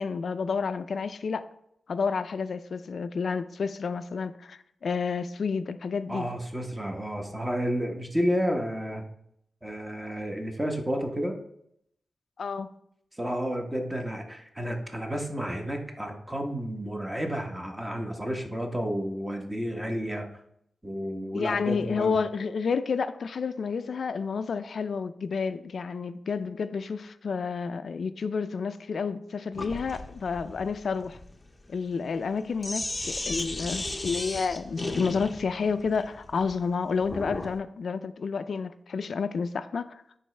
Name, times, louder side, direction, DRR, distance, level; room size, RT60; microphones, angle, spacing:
voice 1, 0.0-1.5 1.9-6.2 12.4-12.7 21.3-31.2 31.7-40.0, left 5 dB, 70° left, 0.4 m, -30 dB
voice 2, 6.1-9.0 9.6-11.3 13.2-20.3 20.8-22.1, equal, 15° right, 1.1 m, -31 dB
Sink (filling or washing), 29.6-37.6, left 2 dB, 20° left, 0.7 m, -36 dB
10.0 x 3.9 x 3.3 m
wide cardioid pair, 90°, 0 cm